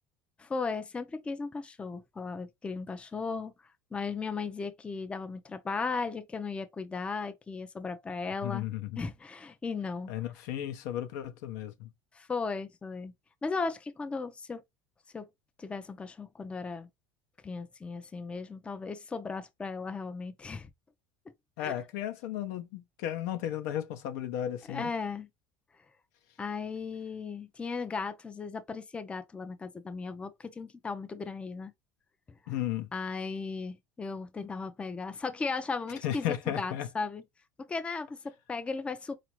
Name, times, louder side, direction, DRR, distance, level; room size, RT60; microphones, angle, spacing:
voice 1, 0.4-3.5 3.9-8.7 9.0-10.1 12.1-13.1 13.4-14.6 15.1-15.3 15.6-16.9 17.4-20.7 21.6-21.7 24.7-25.3 26.4-31.7 32.9-37.2 37.6-39.1, left 4 dB, 10° left, 0.4 m, -36 dB
voice 2, 8.4-9.0 10.1-11.9 21.6-24.9 32.5-32.9 36.0-36.9, left 11 dB, 80° left, 0.6 m, -34 dB
4.1 x 2.5 x 3.0 m
cardioid pair, 155°, 10 cm